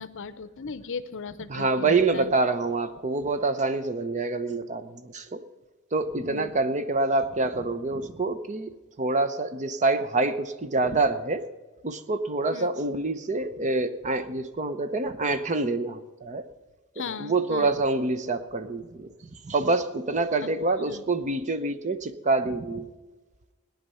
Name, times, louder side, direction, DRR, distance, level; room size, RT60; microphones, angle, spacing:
voice 1, 0.0-2.3 6.3-6.6 12.5-12.7 17.0-17.8 20.4-20.5 20.9-21.0, left 5 dB, 60° left, 14 dB, 0.7 m, -37 dB
voice 2, 1.5-5.4 5.9-11.4 11.8-16.4 17.2-19.1 19.4-22.9, right 3 dB, 35° right, 12 dB, 0.7 m, -26 dB
18.0 x 10.0 x 5.6 m, 1.2 s
head